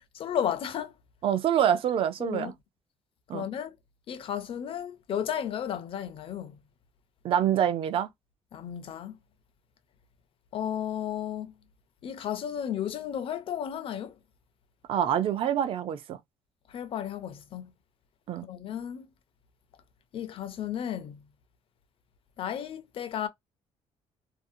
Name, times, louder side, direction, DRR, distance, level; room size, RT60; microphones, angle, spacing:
voice 1, 0.1-0.9 2.2-2.5 3.3-3.8 4.1-6.6 8.5-9.2 10.5-11.5 12.0-14.2 16.7-17.7 18.4-19.1 20.1-21.2 22.4-23.3, left 9 dB, 50° left, 0.5 m, -33 dB
voice 2, 1.2-2.5 3.3-3.5 7.2-8.1 14.9-16.2 18.3-18.5, right 9 dB, 50° right, 0.4 m, -26 dB
2.6 x 2.0 x 2.6 m
cardioid pair, 125°, 12 cm